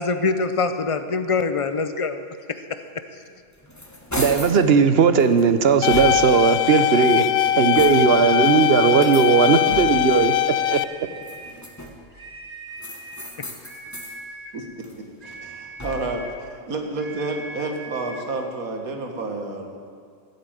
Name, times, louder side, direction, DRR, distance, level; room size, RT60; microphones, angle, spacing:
voice 1, 0.0-2.6 13.4-13.5, left 4 dB, 40° left, 9 dB, 0.5 m, -24 dB
sound 1, 3.3-4.6 5.2-6.5 7.1-8.3 8.9-10.2 11.1-12.1 12.8-14.2 14.6-16.3, left 1 dB, 10° left, 1.5 m, -36 dB
voice 2, 4.2-7.3 7.6-10.3 10.7-10.9, right 6 dB, 55° right, 10 dB, 0.8 m, -17 dB
sound 2, 5.8-10.8, left 12 dB, 80° left, 1.0 m, -21 dB
sound 3, 10.6-11.7 12.1-13.4 13.6-14.6 15.2-16.4 17.0-18.3, right 2 dB, 30° right, 1.8 m, -40 dB
voice 3, 14.5-14.9 15.2-19.7, right 2 dB, 80° right, 3 dB, 2.1 m, -30 dB
13.0 x 8.3 x 9.0 m, 2.2 s
omnidirectional pair, 1.5 m